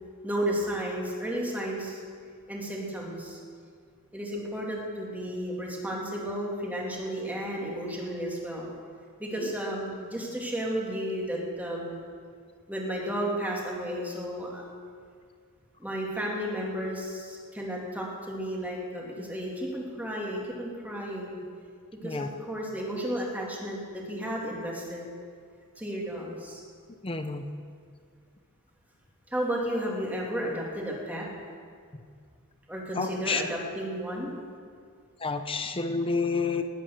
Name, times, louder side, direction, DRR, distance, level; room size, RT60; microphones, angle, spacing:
voice 1, 0.2-2.0 2.5-3.4 4.1-8.7 9.2-12.0 12.7-14.6 15.8-21.4 22.0-25.1 25.8-26.6 29.3-31.3 32.7-34.3, equal, 5° right, -3 dB, 2.8 m, -33 dB
voice 2, 27.0-27.4 33.0-33.4 35.2-36.6, left 4 dB, 25° left, 8 dB, 0.8 m, -29 dB
19.5 x 9.2 x 6.8 m, 2.1 s
head